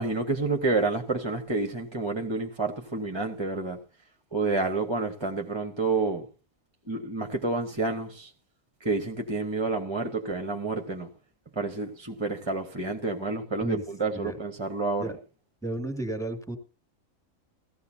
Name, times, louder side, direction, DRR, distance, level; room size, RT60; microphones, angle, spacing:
voice 1, 0.0-3.8 4.3-6.3 6.9-8.3 8.8-11.1 11.5-15.1, right 3 dB, 20° right, 1.0 m, -29 dB
voice 2, 15.6-16.6, right 2 dB, ahead, 2.2 m, -33 dB
16.0 x 15.5 x 2.8 m
omnidirectional pair, 1.5 m